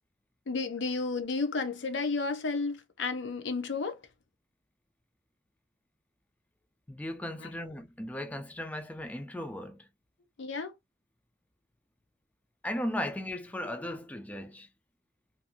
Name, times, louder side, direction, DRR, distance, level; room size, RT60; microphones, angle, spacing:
voice 1, 0.5-4.0 7.4-7.5 10.4-10.7, left 4 dB, 85° left, 0.6 m, -32 dB
voice 2, 6.9-9.8 12.6-14.7, left 1 dB, 10° left, 0.3 m, -36 dB
2.6 x 2.5 x 2.6 m
head